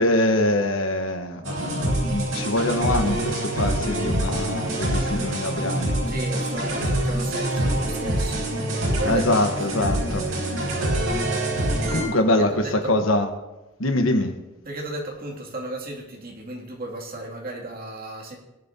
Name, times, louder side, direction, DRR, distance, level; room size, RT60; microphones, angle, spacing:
voice 1, 0.0-6.0 9.1-10.3 11.9-13.3 13.8-14.4, left 1 dB, 75° left, 1.2 m, -24 dB
sound 1, 1.4-12.0, right 1 dB, 85° right, 4.8 m, -25 dB
voice 2, 6.1-10.4 12.4-13.1 14.6-18.4, right 2 dB, 45° right, 2.6 m, -34 dB
20.5 x 11.0 x 2.8 m
head